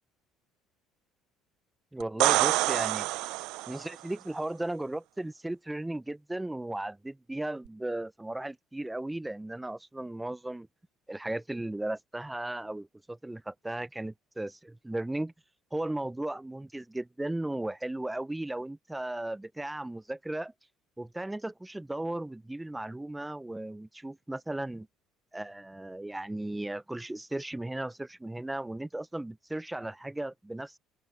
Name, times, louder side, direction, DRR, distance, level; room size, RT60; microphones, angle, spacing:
voice 1, 1.9-3.1 3.7-10.7 11.1-15.3 15.7-20.5 21.0-24.9 25.3-30.8, right 1 dB, 5° right, 0.5 m, -36 dB
sound 1, 2.0-3.9 7.7-7.8, right 20 dB, 75° right, 0.3 m, -27 dB
open air
cardioid pair, 120°, 0 cm